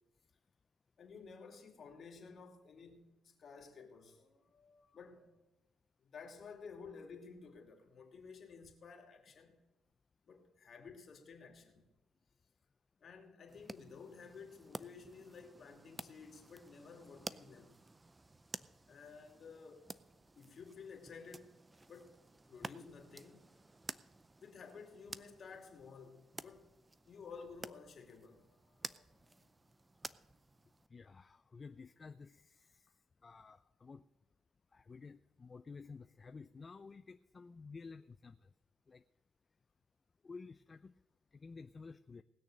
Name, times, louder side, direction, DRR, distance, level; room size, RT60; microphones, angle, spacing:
voice 1, 1.0-5.4 6.0-9.6 10.3-11.9 13.0-17.8 18.9-19.9 20.4-22.2 22.5-23.5 24.4-26.7 27.0-29.5, left 5 dB, 50° left, 2.6 m, -54 dB
sound 1, 13.5-30.9, right 2 dB, 20° right, 0.5 m, -52 dB
voice 2, 30.9-32.9 33.2-34.1 34.7-38.5 38.9-39.0 40.2-40.9 41.3-42.2, left 4 dB, 35° left, 0.5 m, -52 dB
19.5 x 6.6 x 6.6 m
cardioid pair, 90°, 0 cm